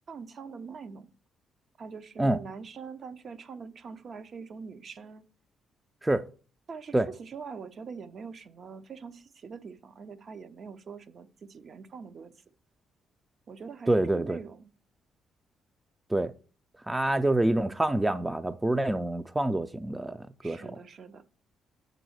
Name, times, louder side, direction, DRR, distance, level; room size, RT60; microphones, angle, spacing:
voice 1, 0.1-1.1 1.8-5.2 6.7-12.3 13.5-14.7 20.4-21.2, right 5 dB, 50° right, 0.6 m, -43 dB
voice 2, 13.9-14.4 16.1-16.3 16.9-20.7, right 1 dB, 10° right, 0.4 m, -26 dB
6.3 x 3.9 x 6.3 m
cardioid pair, 90°, 0 cm